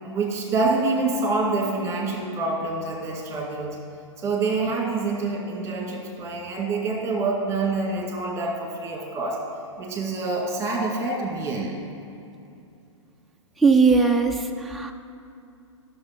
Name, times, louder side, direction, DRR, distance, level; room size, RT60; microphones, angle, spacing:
voice 1, 0.0-3.8 4.2-9.4 9.8-11.9, right 3 dB, 15° right, 0 dB, 2.0 m, -26 dB
voice 2, 13.6-14.9, right 4 dB, ahead, 1 dB, 0.4 m, -19 dB
13.5 x 6.4 x 5.3 m, 2.6 s
hypercardioid pair, 115°, 16 cm